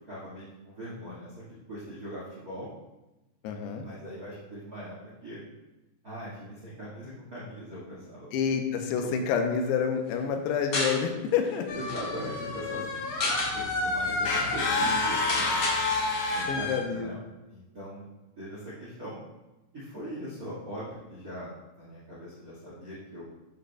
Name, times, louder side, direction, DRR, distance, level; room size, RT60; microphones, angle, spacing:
voice 1, 0.0-2.7 3.8-5.0 5.2-5.4 6.0-8.6 11.4-13.0 13.5-15.7 16.3-17.2 17.5-18.1 18.4-19.1 19.7-23.2, equal, 60° right, -8 dB, 0.9 m, -41 dB
voice 2, 3.4-3.9 8.3-11.7 16.5-17.1, left 6 dB, 85° left, 5 dB, 2.7 m, -28 dB
sound 1, 10.7-11.0 11.4-11.5 11.8-12.0 12.9-13.5 14.1-14.2 14.4-14.6 15.3-15.8, left 2 dB, 50° left, 2.0 m, -30 dB
sound 2, 11.7-16.8, left 3 dB, 65° left, 2.0 m, -29 dB
12.0 x 5.2 x 2.2 m, 1.0 s
omnidirectional pair, 4.7 m